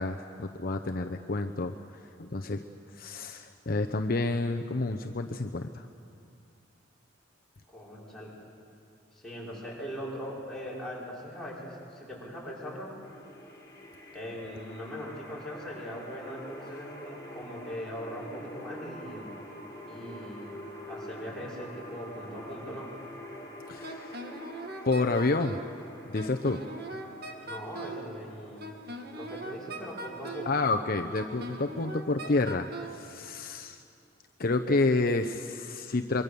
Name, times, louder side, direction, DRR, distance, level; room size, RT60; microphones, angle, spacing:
voice 1, 0.0-1.7 2.2-2.6 2.9-5.8 23.7-24.2 24.9-25.6 26.1-26.6 30.5-32.7 32.9-33.8 34.4-36.2, left 3 dB, 50° left, 5 dB, 0.8 m, -29 dB
voice 2, 7.7-8.3 9.1-12.9 14.1-19.3 19.8-20.5 20.9-22.9 27.4-28.7 29.1-30.6, equal, 5° left, -7 dB, 6.0 m, -40 dB
sound 1, 13.0-32.0, equal, 20° left, 3.8 m, -47 dB
Wind instrument woodwind instrument, 23.8-25.7 26.2-28.1 28.6-30.6 31.1-33.0, right 1 dB, 55° right, 2.0 m, -40 dB
24.0 x 23.5 x 6.9 m, 2.4 s
head